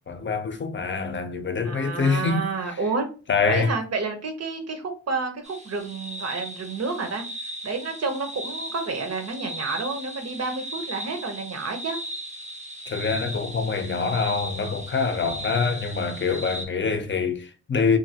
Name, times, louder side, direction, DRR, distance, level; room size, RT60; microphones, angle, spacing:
voice 1, 0.1-2.4 3.3-3.7 12.9-18.0, left 5 dB, 40° left, 0.6 m, -25 dB
voice 2, 1.6-3.0 3.5-7.2 7.6-12.0, right 4 dB, 60° right, 0.8 m, -30 dB
sound 1, 5.4-16.7, right 1 dB, 25° right, 0.6 m, -37 dB
2.7 x 2.6 x 2.8 m
cardioid pair, 55°, 29 cm